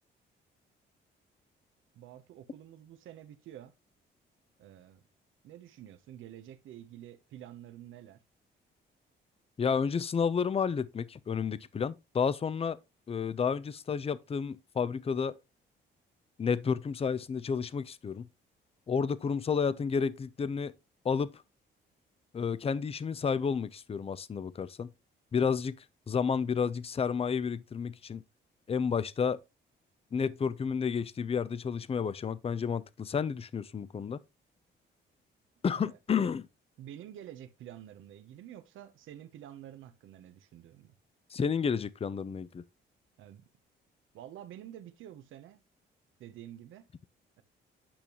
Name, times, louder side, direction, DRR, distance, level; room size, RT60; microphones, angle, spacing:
voice 1, 1.9-3.7 4.6-5.0 5.4-8.2 35.7-36.0 36.8-40.9 43.2-43.5 44.1-45.6 46.2-46.9, right 11 dB, 80° right, 0.8 m, -49 dB
voice 2, 9.6-12.8 13.1-15.3 16.4-18.3 18.9-20.7 21.0-21.3 22.3-24.9 25.3-25.8 26.1-28.2 28.7-29.4 30.1-34.2 35.6-36.5 41.3-42.6, left 6 dB, 30° left, 0.5 m, -31 dB
8.7 x 5.3 x 2.9 m
cardioid pair, 90°, 20 cm